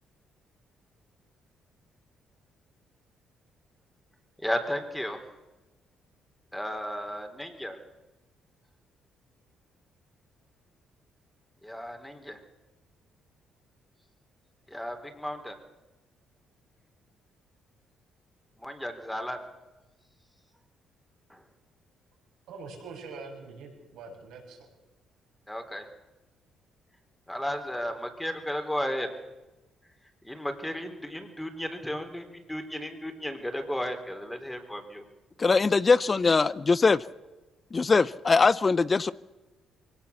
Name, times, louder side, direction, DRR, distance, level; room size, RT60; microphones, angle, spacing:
voice 1, 4.4-5.2 6.5-7.8 11.6-12.4 14.7-15.6 18.6-19.5 21.3-21.4 25.5-25.9 27.3-29.1 30.2-35.0, equal, 5° left, 3.8 m, -34 dB
voice 2, 22.5-24.7, right 4 dB, 75° right, 6.7 m, -44 dB
voice 3, 35.4-37.0 37.7-39.1, left 4 dB, 35° left, 0.7 m, -22 dB
23.0 x 18.0 x 7.2 m
hypercardioid pair, 55°, 0 cm